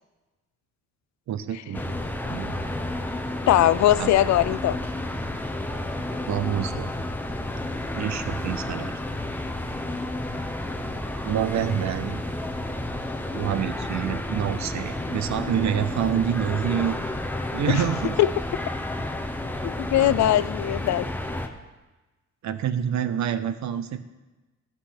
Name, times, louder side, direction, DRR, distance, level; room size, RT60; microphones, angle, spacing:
voice 1, 1.3-2.7 4.0-4.1 6.3-6.9 7.9-8.9 11.2-12.2 13.3-17.0 17.5-18.2 19.9-20.4 22.4-24.1, right 9 dB, 65° right, 0.8 m, -27 dB
sound 1, 1.7-21.5, left 1 dB, 5° left, 0.9 m, -31 dB
voice 2, 3.5-4.8 17.7-17.8 18.2-18.3 19.6-21.1, left 13 dB, 65° left, 0.5 m, -20 dB
13.0 x 6.1 x 5.9 m
cardioid pair, 90°, 30 cm